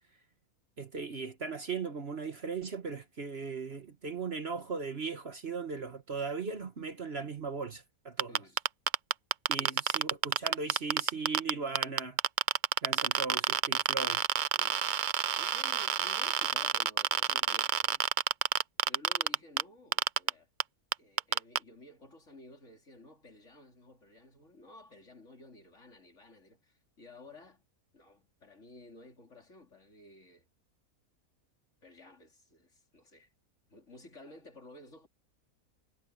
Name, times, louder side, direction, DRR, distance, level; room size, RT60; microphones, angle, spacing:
voice 1, 0.8-8.4 9.5-12.2 12.8-14.2, right 4 dB, 45° right, 1.4 m, -38 dB
sound 1, 8.2-11.5 11.8-19.6 19.9-20.3 20.6-20.7 20.9-21.6, right 9 dB, 70° right, 0.4 m, -28 dB
voice 2, 14.5-14.9 15.4-18.1 18.8-20.5 21.0-27.6 27.9-30.5 31.8-33.3 33.7-35.1, left 2 dB, 55° left, 4.0 m, -54 dB
omnidirectional pair, 1.6 m